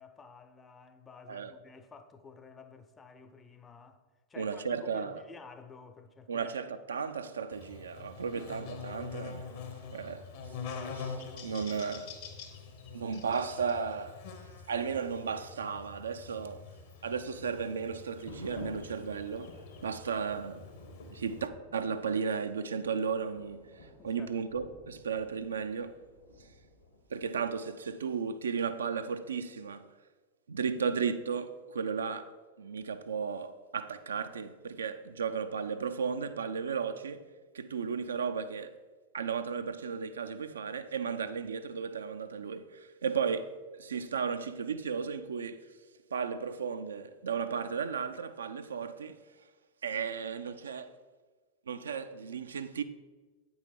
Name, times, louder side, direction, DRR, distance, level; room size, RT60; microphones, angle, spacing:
voice 1, 0.0-4.0 4.3-6.5 8.3-8.4 24.0-24.3, left 4 dB, 20° left, 0.5 m, -52 dB
voice 2, 4.4-5.2 6.3-9.5 9.9-10.2 10.9-12.1 12.9-14.2 14.7-16.6 17.0-19.5 19.8-20.7 21.1-23.6 24.0-25.9 27.1-29.8 30.5-32.3 32.6-37.2 37.5-38.8 39.1-45.7 46.1-49.2 49.8-50.9 51.7-52.8, right 6 dB, 70° right, 0.4 m, -34 dB
Buzz, 7.5-21.5, left 5 dB, 50° left, 1.0 m, -45 dB
sound 1, 18.1-27.5, left 2 dB, 70° left, 1.5 m, -52 dB
8.4 x 5.5 x 4.4 m
figure-of-eight pair, 90°, 0 cm